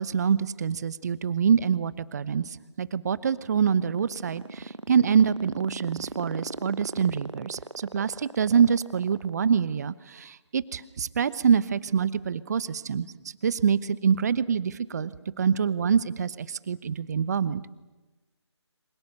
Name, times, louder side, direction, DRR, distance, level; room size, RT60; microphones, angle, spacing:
voice 1, 0.0-13.1 13.4-15.1 15.4-17.6, right 7 dB, 35° right, 18 dB, 1.0 m, -25 dB
sound 1, 3.0-9.6, right 2 dB, 80° right, 1.2 m, -37 dB
28.5 x 26.0 x 6.8 m, 1.1 s
figure-of-eight pair, 150°, 15 cm